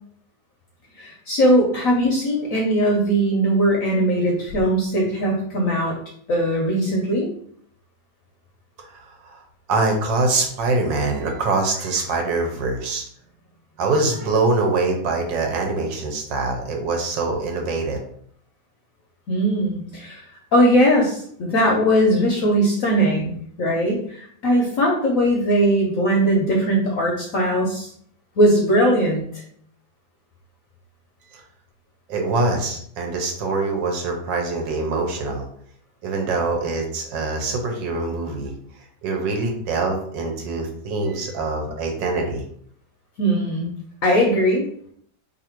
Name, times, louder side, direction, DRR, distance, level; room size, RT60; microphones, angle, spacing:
voice 1, 1.0-6.0 6.3-7.3 19.3-20.2 20.5-27.9 28.4-29.4 43.2-43.7 44.0-44.6, equal, 65° left, -1 dB, 0.8 m, -20 dB
voice 2, 8.9-9.4 9.7-13.0 13.8-18.0 31.3-31.4 32.1-35.5 36.0-38.5 39.0-42.4, right 3 dB, 80° right, 2 dB, 1.4 m, -24 dB
3.1 x 2.6 x 4.3 m, 0.63 s
omnidirectional pair, 2.0 m